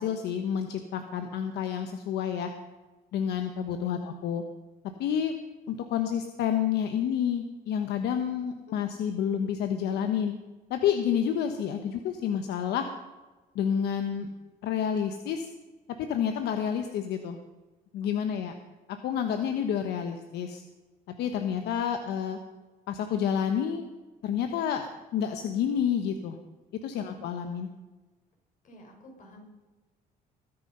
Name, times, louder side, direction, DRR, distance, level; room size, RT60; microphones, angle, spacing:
voice 1, 0.0-2.5 3.1-4.4 5.0-5.3 5.7-10.3 10.7-12.9 13.5-14.3 14.6-15.5 16.0-17.4 17.9-18.5 19.0-20.6 21.2-22.4 22.9-23.9 24.2-26.4 26.8-27.7, left 8 dB, 75° left, 7 dB, 1.2 m, -29 dB
voice 2, 8.3-8.7 18.0-18.5 27.0-27.2 28.6-29.4, right 1 dB, 50° left, 1 dB, 5.5 m, -52 dB
21.0 x 9.8 x 5.5 m, 1.2 s
cardioid pair, 110°, 17 cm